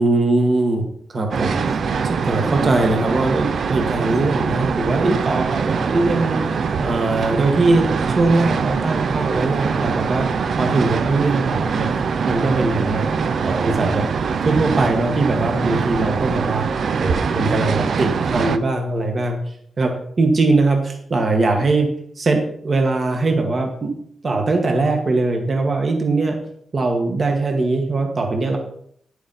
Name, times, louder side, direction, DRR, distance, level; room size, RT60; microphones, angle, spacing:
voice 1, 0.0-1.8 2.0-6.4 6.8-13.1 13.4-14.1 14.4-16.7 17.0-19.4 19.8-21.9 22.2-23.9 24.2-26.4 26.7-28.6, right 3 dB, 35° right, 3 dB, 1.3 m, -21 dB
sound 1, 1.3-18.6, right 5 dB, 55° right, 0.6 m, -23 dB
10.5 x 8.2 x 4.1 m, 0.65 s
wide cardioid pair, 175°, 0 cm